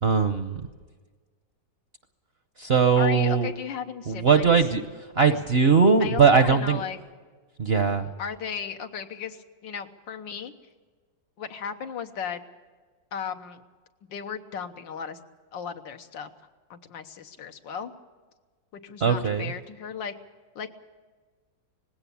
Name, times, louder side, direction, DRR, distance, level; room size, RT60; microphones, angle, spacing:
voice 1, 0.0-0.6 2.6-3.5 4.1-4.8 5.1-6.8 7.6-8.1 19.0-19.5, right 5 dB, 50° right, 9 dB, 0.7 m, -20 dB
voice 2, 3.0-4.5 5.3-5.4 6.0-7.0 8.2-10.5 11.4-12.4 13.1-13.6 14.1-15.2 15.5-16.3 16.7-17.9 18.7-20.1 20.6-20.7, left 7 dB, 85° left, 7 dB, 1.8 m, -35 dB
19.5 x 16.5 x 8.6 m, 1.4 s
omnidirectional pair, 2.0 m